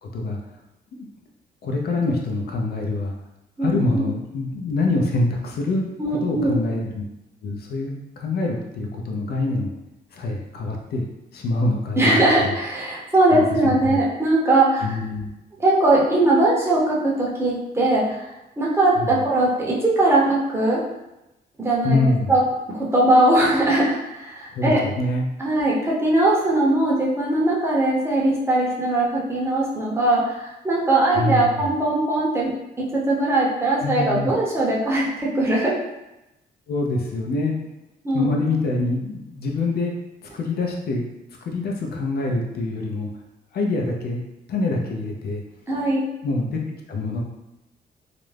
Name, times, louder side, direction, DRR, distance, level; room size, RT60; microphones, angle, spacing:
voice 1, 0.0-0.4 0.9-1.1 1.6-3.1 3.6-5.9 6.2-7.0 7.4-9.7 10.1-11.1 11.3-12.6 13.3-14.0 14.8-15.3 19.0-19.2 21.8-22.3 24.5-25.2 31.1-31.7 33.8-34.3 36.7-37.6 38.1-39.9 40.3-41.0 41.4-43.1 43.5-44.2 44.5-45.4 46.2-46.6 46.9-47.2, left 2 dB, 70° left, 1 dB, 0.5 m, -25 dB
voice 2, 3.6-4.0 6.0-6.6 12.0-14.8 15.6-18.3 18.6-20.8 21.6-22.0 22.3-22.4 22.9-24.8 25.4-35.8 38.0-38.3 45.7-46.0, right 2 dB, 15° right, -5 dB, 0.6 m, -20 dB
2.4 x 2.0 x 3.2 m, 0.93 s
cardioid pair, 130°, 17 cm